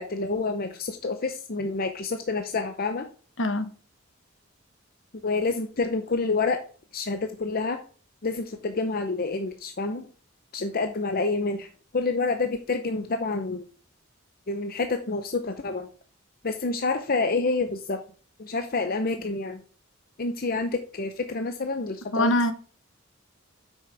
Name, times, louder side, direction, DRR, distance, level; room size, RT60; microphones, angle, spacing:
voice 1, 0.0-3.1 5.2-6.6 6.9-7.8 8.2-10.0 10.5-11.7 11.9-13.6 14.5-15.9 16.4-18.0 18.4-19.6 20.2-22.3, left 3 dB, 45° left, 0.7 m, -28 dB
voice 2, 3.4-3.7 22.1-22.5, left 1 dB, 65° left, 1.1 m, -23 dB
7.7 x 6.4 x 3.4 m
head